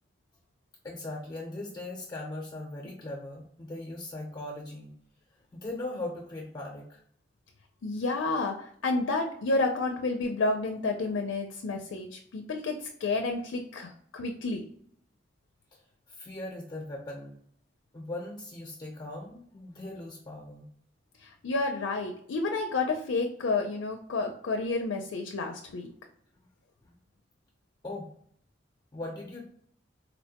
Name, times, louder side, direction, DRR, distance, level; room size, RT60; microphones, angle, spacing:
voice 1, 0.8-4.9 5.5-7.0 16.2-17.3 17.9-20.7 26.8-26.9 27.8-28.1 28.9-29.4, left 2 dB, 20° left, 0 dB, 0.6 m, -39 dB
voice 2, 7.8-14.6 21.2-25.9, left 3 dB, 85° left, 4 dB, 0.4 m, -30 dB
4.0 x 2.1 x 2.8 m, 0.64 s
head